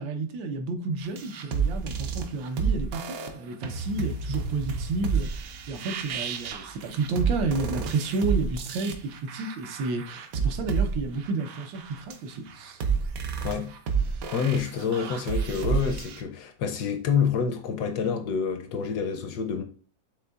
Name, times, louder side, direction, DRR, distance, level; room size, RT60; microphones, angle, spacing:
voice 1, 0.0-12.8, right 3 dB, 90° right, 1.5 m, -31 dB
sound 1, 1.0-16.2, right 6 dB, 70° right, 0.8 m, -30 dB
voice 2, 13.4-13.8 14.3-19.6, left 6 dB, 70° left, 1.0 m, -27 dB
6.7 x 3.4 x 2.3 m
omnidirectional pair, 2.0 m